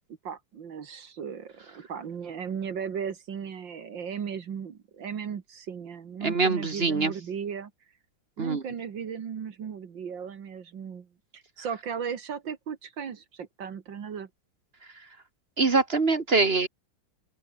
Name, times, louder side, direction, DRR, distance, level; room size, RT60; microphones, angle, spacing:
voice 1, 0.2-7.7 8.4-11.1 11.3-14.3, right 7 dB, 60° right, 2.3 m, -36 dB
voice 2, 6.2-7.1 8.4-8.6 15.6-16.7, right 3 dB, 30° right, 1.5 m, -24 dB
open air
omnidirectional pair, 2.3 m